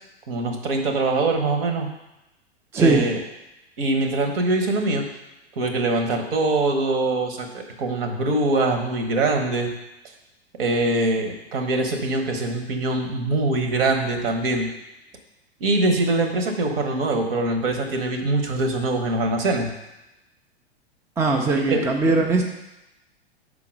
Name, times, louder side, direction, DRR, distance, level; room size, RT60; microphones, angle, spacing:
voice 1, 0.3-1.9 2.8-3.2 3.8-5.0 5.6-9.7 10.6-14.7 15.6-19.7 21.5-21.8, right 2 dB, 55° right, 4 dB, 1.3 m, -23 dB
voice 2, 2.7-3.0 21.2-22.4, right 3 dB, 10° right, 1 dB, 0.4 m, -20 dB
5.7 x 3.9 x 6.1 m, 0.95 s
figure-of-eight pair, 95°, 33 cm